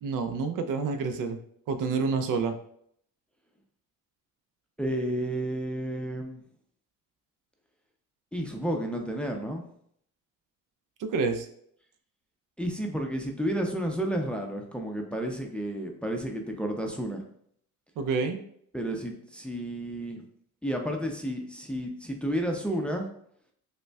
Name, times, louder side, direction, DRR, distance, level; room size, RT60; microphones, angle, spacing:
voice 1, 0.0-1.4 1.7-2.6 11.0-11.5 18.0-18.4, right 4 dB, 70° right, 8 dB, 0.5 m, -28 dB
voice 2, 4.8-6.4 8.3-9.6 12.6-17.2 18.7-20.2 20.6-23.1, equal, 5° left, 2 dB, 0.5 m, -31 dB
5.0 x 2.1 x 2.3 m, 0.66 s
cardioid pair, 90°, 33 cm